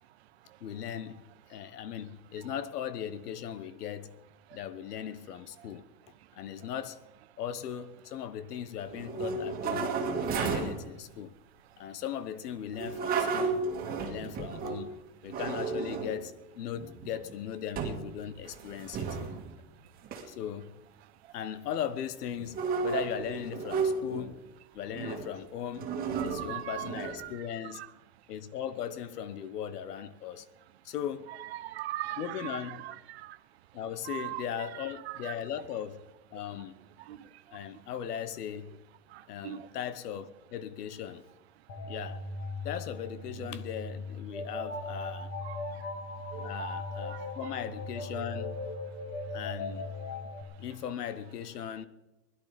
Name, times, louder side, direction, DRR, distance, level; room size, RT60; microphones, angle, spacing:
voice 1, 0.6-1.2 1.5-4.2 4.5-5.8 6.3-7.0 7.4-11.3 11.8-15.0 15.2-19.2 20.3-20.8 21.3-24.4 24.7-25.9 26.2-27.9 28.3-30.5 30.8-31.3 32.2-32.8 33.7-36.8 37.5-38.7 39.3-41.2 41.9-42.2 42.6-45.3 46.4-48.6 49.3-49.9 50.6-51.9, left 9 dB, 65° left, 1.2 m, -38 dB
sound 1, 8.9-10.8 12.7-14.9 15.3-16.2 16.8-17.3 17.8-18.1 18.4-19.5 20.0-20.2 22.4-24.3 24.9-25.3 25.8-27.3, right 5 dB, 20° right, 1.9 m, -33 dB
voice 2, 26.2-27.3 27.7-27.9 31.5-33.4 34.1-34.4 35.1-35.3 37.1-37.2 39.1-39.7 45.4-45.6 46.3-46.6 47.1-47.2, right 14 dB, 40° right, 0.5 m, -40 dB
sound 2, 41.7-50.4, left 2 dB, 30° left, 2.0 m, -38 dB
20.5 x 11.5 x 5.1 m
supercardioid pair, 165°, 49 cm